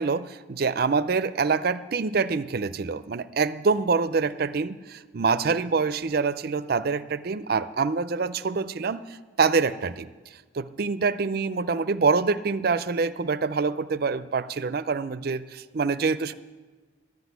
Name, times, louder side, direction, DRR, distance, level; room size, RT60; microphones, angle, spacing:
voice 1, 0.0-10.1 10.5-16.3, right 4 dB, 55° right, 15 dB, 0.5 m, -26 dB
12.0 x 8.0 x 9.5 m, 1.4 s
head